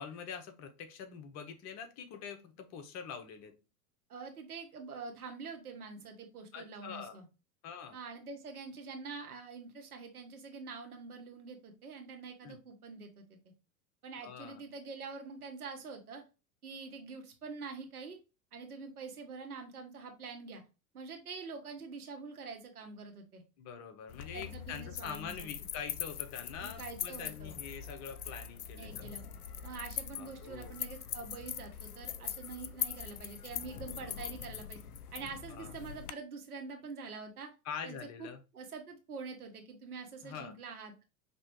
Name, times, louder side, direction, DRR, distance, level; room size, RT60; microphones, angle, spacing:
voice 1, 0.0-3.5 6.5-7.2 7.6-8.0 12.4-12.6 14.2-14.6 23.6-29.1 30.1-30.7 35.5-35.7 37.6-38.4 40.2-40.5, left 7 dB, 35° left, 7 dB, 1.0 m, -44 dB
voice 2, 4.1-7.2 7.9-13.4 14.0-16.2 16.6-18.2 18.5-20.6 20.9-23.4 24.3-25.5 26.6-27.6 28.8-29.2 29.6-34.8 35.1-37.5 37.8-38.3 38.5-41.0, right 4 dB, 80° right, 4 dB, 1.4 m, -45 dB
sound 1, 24.1-36.1, left 9 dB, 80° left, 0.6 m, -42 dB
5.4 x 3.0 x 3.0 m, 0.30 s
figure-of-eight pair, 90°, 44 cm